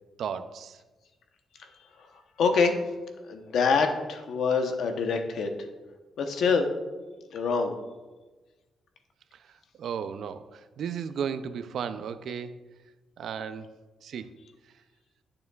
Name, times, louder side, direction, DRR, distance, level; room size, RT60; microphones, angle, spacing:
voice 1, 0.2-0.8 9.3-12.6 13.2-13.8 14.0-14.3, right 7 dB, 70° right, 11 dB, 0.4 m, -35 dB
voice 2, 2.4-2.8 3.3-5.5 6.2-6.7 7.3-7.7, left 5 dB, 70° left, 5 dB, 0.8 m, -25 dB
10.5 x 6.7 x 2.3 m, 1.2 s
cardioid pair, 140°, 0 cm